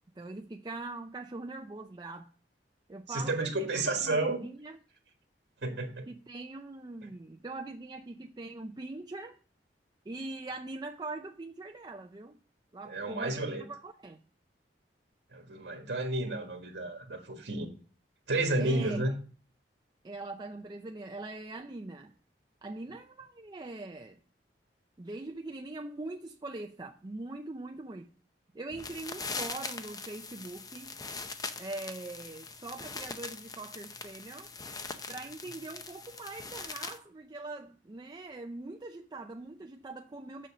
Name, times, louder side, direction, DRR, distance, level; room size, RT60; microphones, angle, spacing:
voice 1, 0.2-2.3 2.9-4.8 6.1-9.4 10.1-12.4 12.7-14.2 18.6-19.2 20.0-22.1 22.6-24.2 25.0-28.1 28.5-31.0 31.6-34.5 35.1-40.5, right 2 dB, 25° right, 0.4 m, -42 dB
voice 2, 3.1-4.4 5.6-6.1 12.8-13.6 15.3-17.7 18.3-19.2, right 2 dB, 90° right, 1.6 m, -31 dB
sound 1, 28.7-37.0, left 4 dB, 20° left, 0.6 m, -41 dB
6.7 x 6.3 x 6.3 m
head